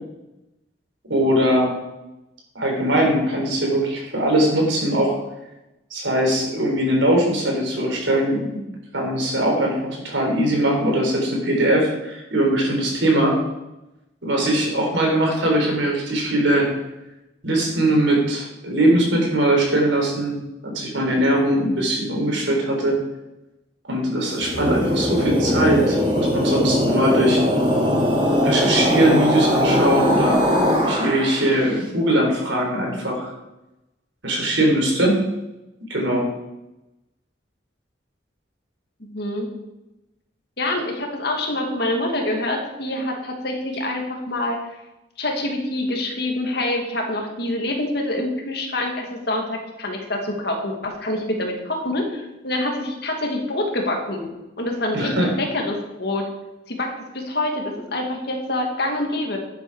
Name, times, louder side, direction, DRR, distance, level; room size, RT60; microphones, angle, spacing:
voice 1, 1.1-1.7 2.5-5.2 5.9-8.6 8.9-13.4 14.2-16.7 17.4-20.4 20.6-23.0 23.8-27.4 28.4-30.4 30.8-33.3 34.2-35.2 35.9-36.3 54.9-55.3, right 1 dB, 80° right, -1 dB, 4.1 m, -21 dB
sound 1, 24.3-31.6, equal, 30° right, 2.5 m, -20 dB
voice 2, 39.0-39.5 40.6-44.6 45.2-54.3 54.6-56.3 56.7-59.4, left 1 dB, 60° left, 1 dB, 2.2 m, -26 dB
11.5 x 8.2 x 4.9 m, 0.95 s
head